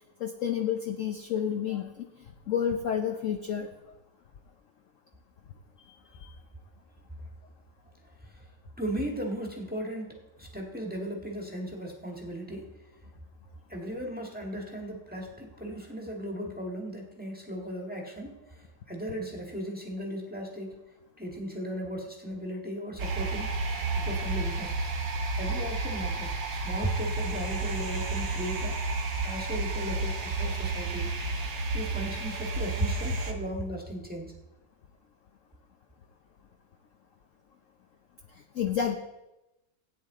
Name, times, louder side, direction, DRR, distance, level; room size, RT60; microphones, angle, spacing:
voice 1, 0.2-2.1 2.5-3.7 5.8-6.3 38.5-39.0, left 8 dB, 60° left, 4 dB, 0.9 m, -30 dB
voice 2, 8.8-12.7 13.7-20.8 21.2-23.5 23.9-24.9 25.3-28.8 29.2-31.1 31.7-34.3, right 1 dB, 5° right, 0 dB, 1.5 m, -36 dB
sound 1, 23.0-33.3, right 3 dB, 80° right, 2.0 m, -31 dB
16.5 x 9.3 x 3.7 m, 0.99 s
omnidirectional pair, 2.0 m